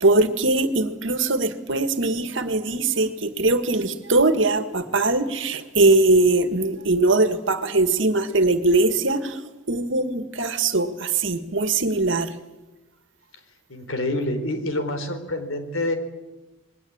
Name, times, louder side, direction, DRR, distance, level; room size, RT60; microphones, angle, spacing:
voice 1, 0.0-9.4 9.7-12.3, right 2 dB, 65° right, 10 dB, 1.9 m, -21 dB
voice 2, 13.7-16.0, left 1 dB, 85° left, 8 dB, 4.3 m, -27 dB
27.0 x 21.5 x 8.8 m, 1.1 s
head